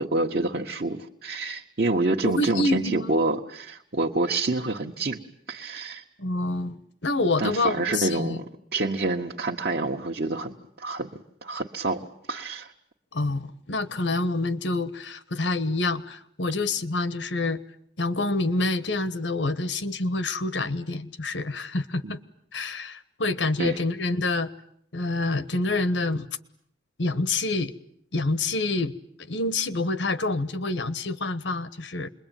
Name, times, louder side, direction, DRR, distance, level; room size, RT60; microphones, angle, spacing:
voice 1, 0.0-5.2 5.5-6.0 7.4-11.1 11.4-12.0 12.3-12.7 23.6-23.8, right 2 dB, 55° right, -1 dB, 1.3 m, -27 dB
voice 2, 2.2-3.1 6.2-8.4 13.1-17.6 18.0-22.2 22.5-24.5 24.9-26.3 27.0-27.7 28.1-28.9 29.3-32.1, left 2 dB, 85° left, 14 dB, 1.3 m, -27 dB
28.0 x 22.0 x 9.2 m, 0.69 s
head